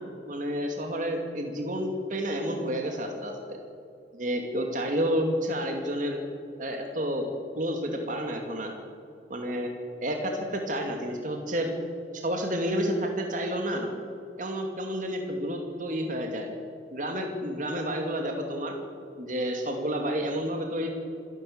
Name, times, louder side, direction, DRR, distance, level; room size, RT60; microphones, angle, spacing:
voice 1, 0.3-3.6 4.1-6.2 6.6-7.3 7.5-8.7 9.3-9.7 10.0-11.7 12.1-13.9 14.4-16.5 16.9-18.8 19.2-20.9, equal, 45° right, 3 dB, 2.5 m, -30 dB
26.5 x 12.0 x 8.7 m, 2.5 s
head